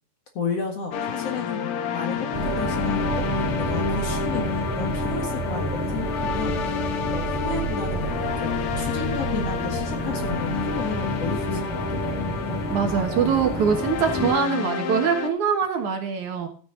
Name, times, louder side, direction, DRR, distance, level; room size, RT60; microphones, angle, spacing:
voice 1, 0.3-1.7 1.9-2.3 2.6-12.1, left 5 dB, 50° left, 3 dB, 2.3 m, -33 dB
sound 1, 0.9-15.3, left 5 dB, 90° left, 1.2 m, -29 dB
sound 2, 2.3-14.3, right 2 dB, 5° right, 2.5 m, -30 dB
voice 2, 12.7-16.5, right 6 dB, 60° right, 4 dB, 2.6 m, -23 dB
14.0 x 9.3 x 3.9 m, 0.42 s
omnidirectional pair, 4.2 m